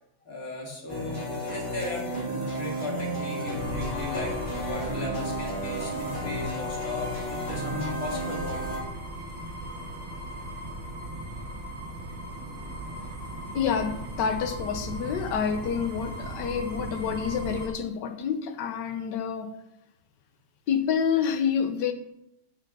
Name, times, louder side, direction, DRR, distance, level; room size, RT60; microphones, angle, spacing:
voice 1, 0.2-8.7, left 2 dB, 45° left, -2 dB, 2.6 m, -36 dB
sound 1, 0.9-8.8, equal, 25° left, 3.1 m, -33 dB
sound 2, 3.6-17.7, right 1 dB, 40° right, 2.3 m, -38 dB
voice 2, 13.5-19.5 20.7-21.9, left 7 dB, 65° left, 8 dB, 1.4 m, -28 dB
9.4 x 6.5 x 5.4 m, 0.83 s
omnidirectional pair, 2.2 m